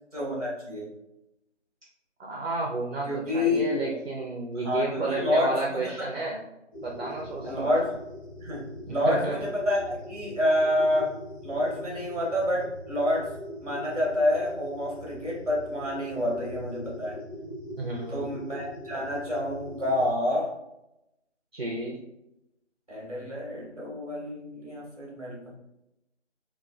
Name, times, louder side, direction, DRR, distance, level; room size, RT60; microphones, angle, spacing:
voice 1, 0.1-0.9 3.1-4.0 4.5-6.1 7.4-8.0 8.4-13.3 13.6-17.2 18.1-20.5 22.9-25.5, left 1 dB, 30° right, -4 dB, 0.8 m, -28 dB
voice 2, 2.2-6.4 6.8-7.7 8.9-9.4 17.8-18.3 21.5-22.0, right 2 dB, 55° right, -2 dB, 0.5 m, -31 dB
sound 1, 6.7-20.1, left 1 dB, 30° left, 0.9 m, -42 dB
2.9 x 2.2 x 2.3 m, 0.88 s
figure-of-eight pair, 175°, 36 cm